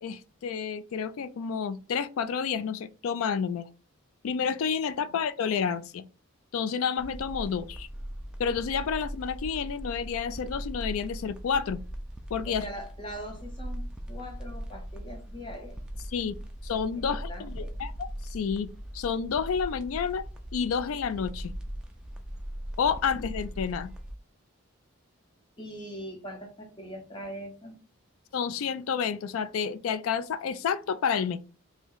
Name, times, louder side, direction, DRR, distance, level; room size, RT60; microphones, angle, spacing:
voice 1, 0.0-3.7 4.2-6.0 6.5-7.9 8.4-11.8 12.3-12.7 16.1-16.4 16.6-17.9 18.2-20.2 20.5-21.5 22.8-23.9 28.3-31.4, left 6 dB, 70° left, 0.3 m, -30 dB
sound 1, 7.0-24.1, equal, 5° right, 0.4 m, -39 dB
voice 2, 12.5-15.8 17.0-17.7 25.6-27.8, equal, 20° left, 0.8 m, -41 dB
3.0 x 2.6 x 3.8 m
head